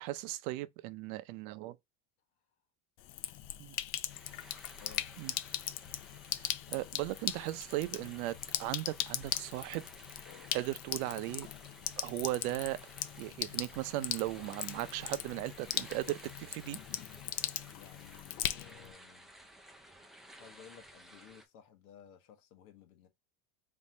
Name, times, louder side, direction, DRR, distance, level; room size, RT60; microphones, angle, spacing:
voice 1, 0.0-1.8 3.6-3.8 5.2-5.3 6.4-9.9 10.5-11.5 12.0-12.8 13.2-16.8, right 17 dB, 80° right, 0.6 m, -37 dB
Sink (filling or washing), 3.0-18.9, left 13 dB, 45° left, 0.5 m, -39 dB
sound 1, 4.1-21.4, right 1 dB, ahead, 0.3 m, -56 dB
voice 2, 4.8-5.1 17.6-19.3 20.3-23.1, left 8 dB, 85° left, 1.3 m, -57 dB
4.1 x 3.6 x 2.7 m
supercardioid pair, 130°, 43 cm